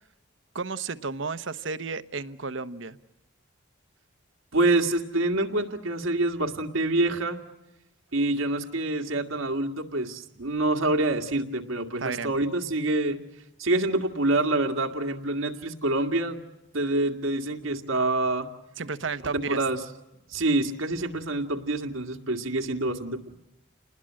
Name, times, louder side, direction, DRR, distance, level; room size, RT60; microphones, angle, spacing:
voice 1, 0.5-3.0 12.0-12.3 18.8-19.6, right 4 dB, 70° right, 12 dB, 1.0 m, -32 dB
voice 2, 4.5-7.4 8.1-13.2 13.6-16.4 16.7-18.5 19.3-19.8 20.3-23.3, right 2 dB, 90° right, 3 dB, 2.0 m, -26 dB
28.5 x 20.5 x 7.5 m, 0.94 s
head